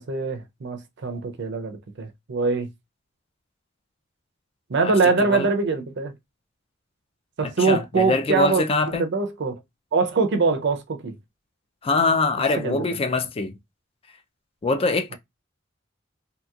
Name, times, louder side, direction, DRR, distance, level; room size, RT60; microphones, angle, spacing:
voice 1, 0.0-2.7 4.7-6.1 7.4-8.6 8.9-9.6 9.9-11.2 12.6-13.0, right 4 dB, 60° right, 0.5 m, -23 dB
voice 2, 7.6-9.0 11.8-13.5 14.6-15.2, left 3 dB, 30° left, 0.3 m, -23 dB
2.9 x 2.8 x 2.3 m
head